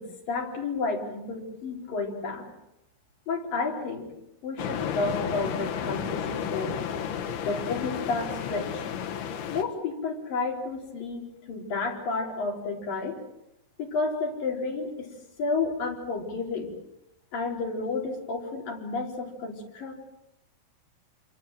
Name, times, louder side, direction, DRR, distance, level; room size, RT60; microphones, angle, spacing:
voice 1, 0.0-2.5 3.3-4.1 4.4-6.8 7.4-8.9 9.5-13.2 13.8-15.1 15.4-16.7 17.3-20.0, left 3 dB, 60° left, 0 dB, 6.1 m, -31 dB
sound 1, 4.6-9.6, left 8 dB, 80° left, 3.6 m, -32 dB
27.5 x 25.0 x 7.6 m, 0.83 s
omnidirectional pair, 4.5 m